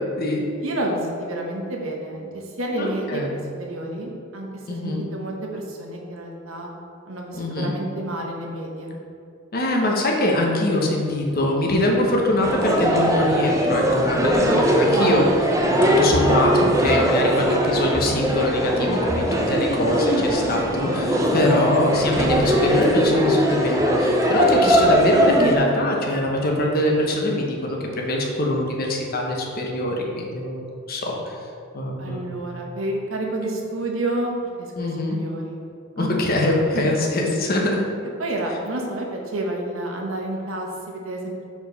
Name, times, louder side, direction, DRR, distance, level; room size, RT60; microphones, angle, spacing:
voice 1, 0.0-0.4 0.9-1.0 2.8-3.3 3.9-4.0 4.7-5.0 7.3-7.7 9.5-15.2 15.7-31.4 31.7-32.3 34.8-35.2 36.0-37.8, left 1 dB, 50° left, 0 dB, 0.9 m, -23 dB
voice 2, 0.6-6.7 7.1-9.0 14.3-14.6 14.9-15.2 21.3-21.5 32.0-34.7 35.1-35.6 36.0-36.1 36.7-36.8 38.2-41.5, right 1 dB, 85° right, 0 dB, 1.0 m, -29 dB
sound 1, 12.4-25.6, equal, 15° right, 0.5 m, -20 dB
4.7 x 4.5 x 5.2 m, 2.5 s
head